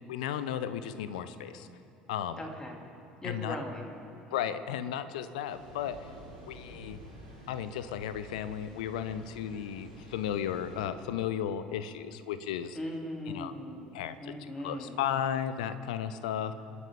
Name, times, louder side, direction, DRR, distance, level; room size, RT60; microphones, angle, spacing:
voice 1, 0.1-1.7 2.1-2.4 3.2-3.6 4.3-6.0 6.5-7.0 7.5-12.8 13.3-13.5 13.9-14.3 14.6-16.5, left 9 dB, 70° left, 13 dB, 0.8 m, -34 dB
voice 2, 2.4-2.8 3.2-3.9 12.7-15.0, left 1 dB, 15° left, 1 dB, 3.1 m, -39 dB
sound 1, 5.4-10.9, right 1 dB, 90° left, 3.0 m, -50 dB
28.5 x 9.8 x 5.1 m, 2.7 s
figure-of-eight pair, 60°, 4 cm